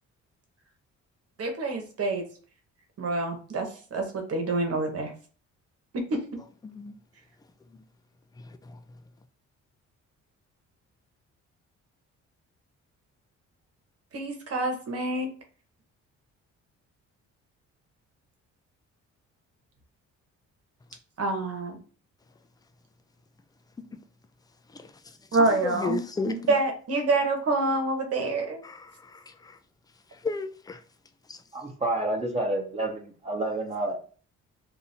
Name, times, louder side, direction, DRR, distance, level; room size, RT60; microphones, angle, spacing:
voice 1, 1.4-2.3 3.0-5.1 5.9-6.4 14.1-15.3 21.2-21.8 25.3-28.6, right 2 dB, 55° right, 1.2 m, -27 dB
voice 2, 6.6-7.0 7.7-7.8 8.4-8.8 24.7-26.5 28.6-29.6 30.1-30.8 31.3-31.4, left 4 dB, 15° left, 0.4 m, -35 dB
voice 3, 31.5-34.0, right 2 dB, 20° right, 1.0 m, -29 dB
2.7 x 2.6 x 4.2 m
cardioid pair, 90°, 30 cm